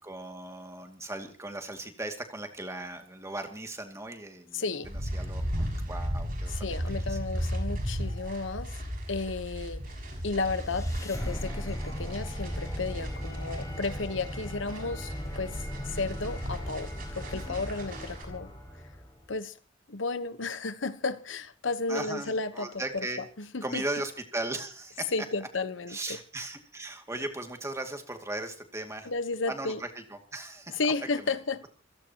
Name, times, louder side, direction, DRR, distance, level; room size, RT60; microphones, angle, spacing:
voice 1, 0.0-7.2 17.3-17.6 21.9-23.3 23.6-25.1 25.9-29.1 29.5-30.8 31.2-31.3, right 2 dB, 15° right, 2.4 m, -38 dB
voice 2, 4.5-4.9 6.5-8.8 9.1-9.8 10.2-18.5 19.3-19.6 19.9-23.1 23.4-23.8 25.1-26.2 29.0-29.8 30.7-31.6, left 3 dB, 70° left, 1.1 m, -33 dB
sound 1, 4.8-18.2, equal, 45° right, 6.8 m, -36 dB
sound 2, 10.1-19.3, equal, 15° left, 5.7 m, -37 dB
27.5 x 17.0 x 3.0 m
head